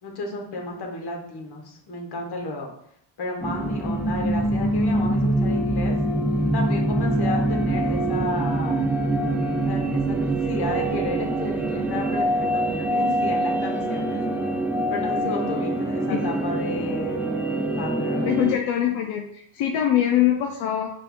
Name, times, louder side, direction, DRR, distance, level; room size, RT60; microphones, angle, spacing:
voice 1, 0.0-2.7 3.2-6.0 6.5-8.8 9.6-14.2 14.9-17.3 17.8-18.3, left 2 dB, 55° left, 1 dB, 1.3 m, -32 dB
sound 1, 3.4-18.5, right 1 dB, 5° right, 0.3 m, -24 dB
voice 2, 18.3-20.9, left 11 dB, 80° left, 2 dB, 0.6 m, -23 dB
5.5 x 2.6 x 3.6 m, 0.69 s
cardioid pair, 100°, 47 cm